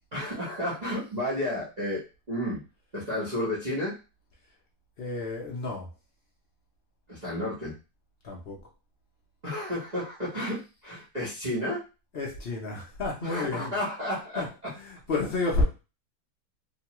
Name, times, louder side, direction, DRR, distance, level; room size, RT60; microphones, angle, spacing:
voice 1, 0.1-2.0 2.3-2.6 2.9-3.9 7.1-7.7 9.4-11.8 13.2-14.5, left 1 dB, 30° right, -9 dB, 0.8 m, -31 dB
voice 2, 5.0-5.9 8.2-8.7 12.1-13.8 14.4-15.6, left 3 dB, 60° left, -1 dB, 0.6 m, -31 dB
3.0 x 2.2 x 2.9 m, 0.31 s
omnidirectional pair, 1.8 m